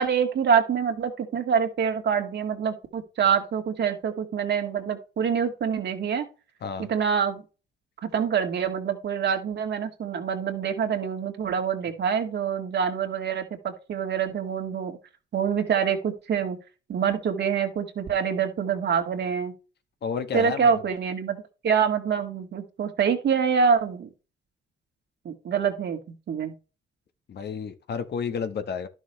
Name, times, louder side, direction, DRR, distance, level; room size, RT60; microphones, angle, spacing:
voice 1, 0.0-6.3 6.9-7.4 8.0-15.0 15.3-16.6 16.9-19.5 20.3-24.1 25.3-26.0 26.3-26.5, right 7 dB, 60° right, 2.1 m, -25 dB
voice 2, 20.0-20.7 27.3-28.9, left 6 dB, 55° left, 1.3 m, -31 dB
11.5 x 6.3 x 3.2 m
cardioid pair, 90°, 20 cm